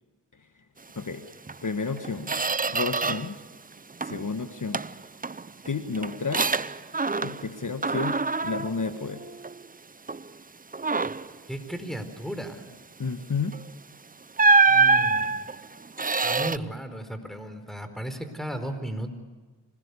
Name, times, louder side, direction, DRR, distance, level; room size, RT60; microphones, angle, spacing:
Squeak, 1.5-1.6 2.0-3.4 3.7-4.3 4.7-7.5 7.8-9.7 10.1-10.3 10.7-11.4 13.5-13.7 14.4-16.6, right 4 dB, 20° right, 0.7 m, -25 dB
voice 1, 1.6-2.3 2.7-3.4 4.0-4.8 5.7-6.5 7.2-8.2 8.4-9.2 13.0-13.6, left 4 dB, 45° left, 7 dB, 1.6 m, -31 dB
voice 2, 11.5-12.6 14.7-15.5 16.2-19.1, right 1 dB, ahead, 9 dB, 4.4 m, -35 dB
26.0 x 19.0 x 8.4 m, 1.3 s
cardioid pair, 45°, 42 cm